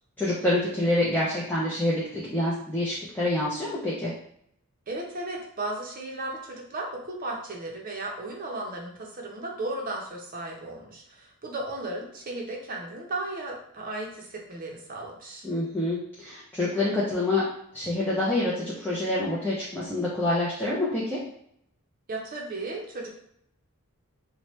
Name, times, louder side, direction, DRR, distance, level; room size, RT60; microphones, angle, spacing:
voice 1, 0.2-4.1 15.4-17.5 17.7-21.2, left 1 dB, 10° left, -8 dB, 0.5 m, -27 dB
voice 2, 4.9-15.5 22.1-23.2, right 2 dB, 40° right, 0 dB, 0.6 m, -35 dB
2.8 x 2.2 x 3.1 m, 0.71 s
head